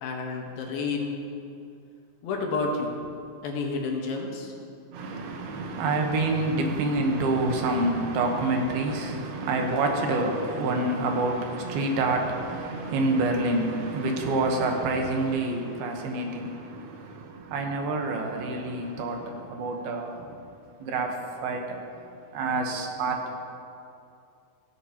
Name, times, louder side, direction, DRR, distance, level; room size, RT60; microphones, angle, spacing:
voice 1, 0.0-1.2 2.2-2.9 3.4-4.5, left 3 dB, 75° left, 1 dB, 3.1 m, -30 dB
voice 2, 4.9-20.4 20.8-21.8 22.3-23.3, right 2 dB, 80° right, 2 dB, 3.1 m, -27 dB
15.5 x 14.5 x 2.9 m, 2.5 s
omnidirectional pair, 4.3 m